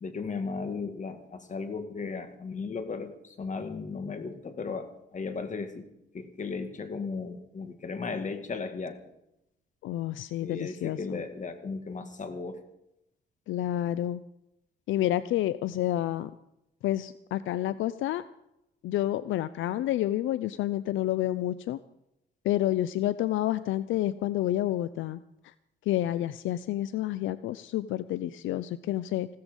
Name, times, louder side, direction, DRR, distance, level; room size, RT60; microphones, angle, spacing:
voice 1, 0.0-5.9 6.1-9.0 10.4-12.6, left 4 dB, 40° left, 8 dB, 2.1 m, -36 dB
voice 2, 9.8-11.0 13.5-14.2 14.9-16.3 16.8-18.2 18.8-21.8 22.4-25.5 25.9-29.3, left 13 dB, 80° left, 16 dB, 0.5 m, -29 dB
16.0 x 13.5 x 5.3 m, 0.84 s
cardioid pair, 90°, 20 cm